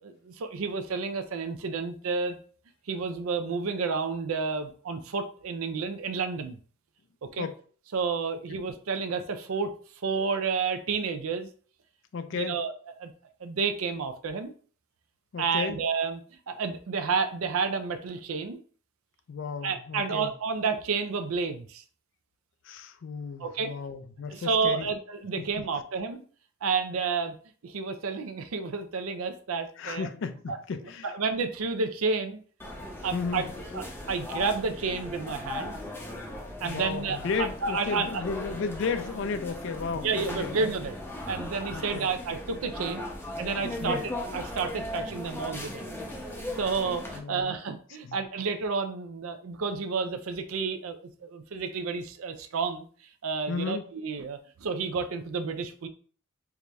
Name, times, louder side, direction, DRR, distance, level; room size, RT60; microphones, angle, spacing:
voice 1, 0.0-2.4 2.9-6.6 7.3-7.5 7.9-9.7 10.0-11.5 12.3-12.7 13.0-13.1 13.4-14.5 15.4-16.2 16.5-18.6 19.6-21.8 23.4-23.7 24.3-26.2 26.6-27.4 27.6-30.1 30.5-30.6 31.0-32.4 33.0-33.4 33.7-35.8 36.6-38.2 40.0-40.9 41.3-43.1 43.4-45.8 46.6-52.9 53.2-55.9, right 5 dB, 80° right, 0.5 m, -30 dB
voice 2, 12.1-12.7 15.3-15.8 19.3-20.3 22.6-24.9 25.4-25.6 29.8-31.1 33.1-33.6 36.6-40.5 41.7-42.1 43.8-44.0 47.1-47.5 48.0-48.2 53.5-53.9, left 5 dB, 60° left, 0.4 m, -34 dB
sound 1, 32.6-47.2, left 1 dB, 10° left, 0.6 m, -38 dB
4.6 x 2.6 x 2.2 m
head